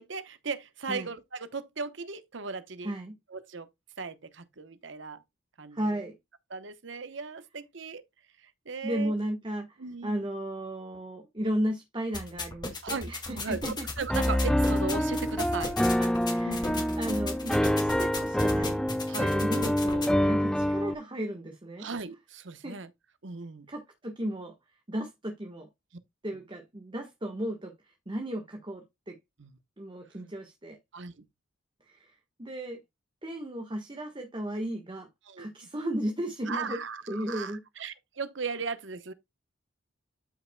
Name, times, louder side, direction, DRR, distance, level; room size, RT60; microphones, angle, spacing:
voice 1, 0.0-2.9 3.3-3.7 4.0-5.2 5.6-6.0 6.5-8.0 8.4-9.1 9.8-10.3 12.8-13.6 14.0-15.7 16.4-17.0 19.1-19.4 20.2-20.4 21.8-22.9 23.2-23.7 29.4-29.5 30.9-31.2 35.3-35.5 36.5-39.1, right 4 dB, 60° right, 0.9 m, -37 dB
voice 2, 2.8-3.1 5.7-6.1 8.8-13.9 14.2-14.3 16.0-18.8 19.2-21.9 22.6-22.7 23.7-24.5 24.9-25.7 26.2-29.2 29.8-30.8 31.9-32.8 33.2-35.1 35.4-36.8 37.1-37.6, right 1 dB, 25° right, 1.2 m, -35 dB
sound 1, 12.1-20.1, left 3 dB, 20° left, 2.1 m, -37 dB
Piano, 14.1-20.9, equal, 5° left, 0.4 m, -26 dB
12.5 x 5.7 x 2.2 m
head